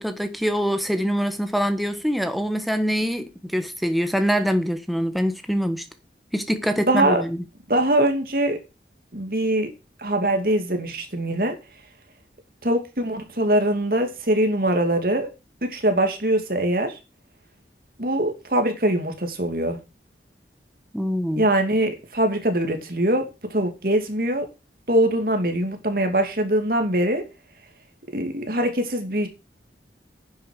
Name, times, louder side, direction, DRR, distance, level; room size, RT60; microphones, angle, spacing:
voice 1, 0.0-5.8 6.3-7.4 20.9-21.5, equal, ahead, 1.2 m, -24 dB
voice 2, 6.9-7.2 7.7-8.6 9.1-9.7 10.0-11.5 12.6-15.3 15.6-17.0 18.0-19.8 21.4-24.5 24.9-27.2 28.1-29.3, right 1 dB, 55° right, 2.7 m, -22 dB
10.0 x 7.9 x 6.7 m
head